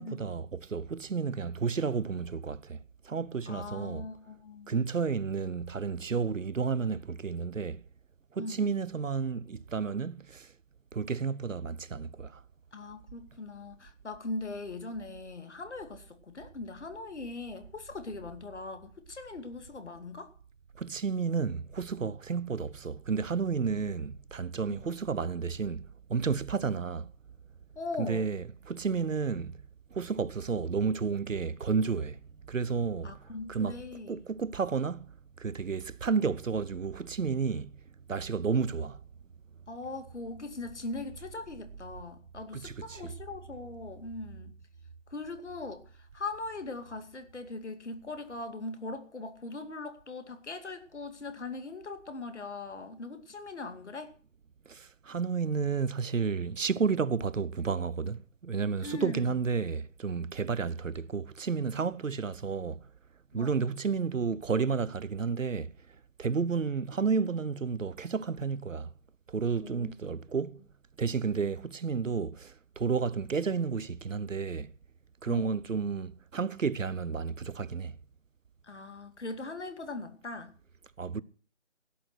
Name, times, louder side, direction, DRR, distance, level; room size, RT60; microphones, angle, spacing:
voice 1, 0.0-4.1 4.7-7.8 8.3-10.5 10.9-12.4 20.8-27.1 28.0-29.5 29.9-33.8 34.1-35.0 35.4-37.7 38.1-39.0 42.5-43.1 54.7-62.9 63.3-65.7 66.2-68.9 69.3-70.6 71.0-74.7 75.2-77.9 81.0-81.2, right 5 dB, 80° right, 0.9 m, -31 dB
voice 2, 3.5-4.7 8.4-8.6 12.7-20.3 24.7-24.9 27.8-28.3 33.0-34.2 39.7-44.6 45.1-54.1 58.8-59.4 63.3-63.5 69.6-70.0 75.2-75.6 78.6-80.5, left 3 dB, 65° left, 2.5 m, -40 dB
17.0 x 8.5 x 6.1 m
figure-of-eight pair, 155°, 38 cm